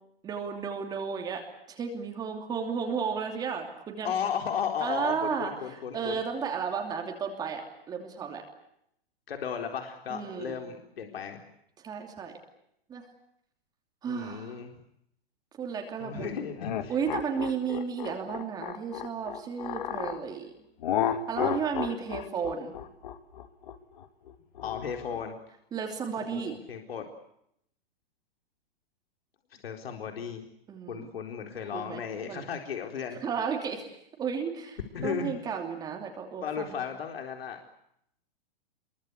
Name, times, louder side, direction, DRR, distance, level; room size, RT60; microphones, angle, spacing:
voice 1, 0.2-1.4 1.7-4.1 4.8-7.6 7.9-8.4 10.1-10.6 11.8-12.3 12.9-13.0 14.0-14.6 15.6-16.4 16.9-20.5 21.1-22.7 25.7-26.5 30.7-31.1 31.7-32.0 32.3-32.4 33.2-36.8, right 6 dB, 15° right, 3 dB, 2.9 m, -33 dB
voice 2, 4.0-6.2 9.3-11.4 14.1-14.7 16.0-16.9 24.6-25.3 26.3-27.1 29.5-30.4 30.9-33.2 34.9-35.3 36.4-37.6, left 7 dB, 75° left, 4 dB, 4.2 m, -35 dB
sound 1, 16.6-20.2 20.8-25.3, left 10 dB, 50° left, 2.6 m, -33 dB
27.5 x 23.0 x 8.3 m, 0.76 s
hypercardioid pair, 170°, 30 cm